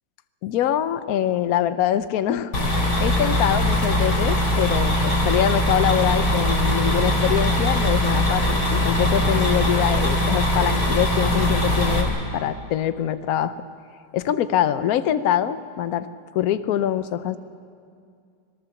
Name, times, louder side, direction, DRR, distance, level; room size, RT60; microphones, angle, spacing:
voice 1, 0.4-2.5 3.0-13.5 14.1-16.1 16.3-17.4, left 10 dB, 70° left, 13 dB, 0.8 m, -24 dB
sound 1, 2.5-12.0, left 1 dB, 55° left, 3.4 m, -21 dB
26.5 x 18.5 x 7.0 m, 2.3 s
omnidirectional pair, 2.3 m